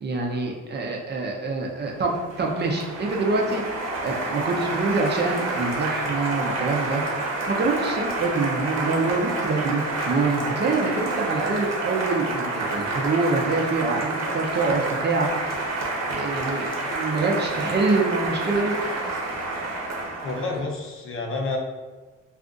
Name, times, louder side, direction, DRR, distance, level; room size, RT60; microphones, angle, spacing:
voice 1, 0.0-3.6 4.0-7.2 7.5-15.5 16.1-18.7, right 3 dB, 35° right, 0 dB, 0.6 m, -25 dB
Applause, 1.8-20.7, right 2 dB, 60° right, 0.9 m, -29 dB
voice 2, 20.2-21.6, left 3 dB, 45° left, 1 dB, 0.6 m, -29 dB
2.5 x 2.4 x 3.7 m, 1.3 s
cardioid pair, 90°, 30 cm